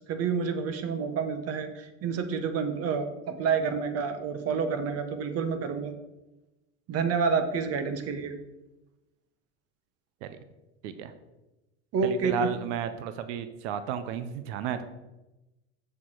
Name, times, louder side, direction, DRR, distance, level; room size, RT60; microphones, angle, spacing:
voice 1, 0.1-5.9 6.9-8.3 11.9-12.5, right 5 dB, 45° right, 9 dB, 1.2 m, -29 dB
voice 2, 12.0-14.8, right 8 dB, 70° right, 11 dB, 0.9 m, -33 dB
7.1 x 6.7 x 4.7 m, 1.0 s
supercardioid pair, 105°, 35 cm